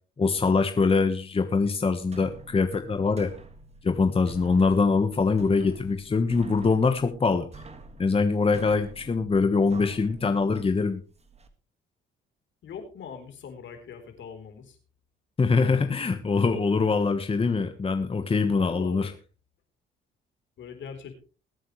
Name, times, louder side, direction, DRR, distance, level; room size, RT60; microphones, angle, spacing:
voice 1, 0.2-3.3 3.8-7.5 8.0-11.0 15.4-19.1, left 4 dB, 30° left, 7 dB, 1.3 m, -23 dB
sound 1, 2.0-11.5, right 3 dB, 30° right, 1.8 m, -48 dB
voice 2, 12.6-14.8 15.6-15.9 18.4-19.1 20.6-21.2, left 6 dB, 70° left, 6 dB, 3.8 m, -42 dB
21.5 x 9.1 x 3.2 m, 0.37 s
cardioid pair, 90°, 20 cm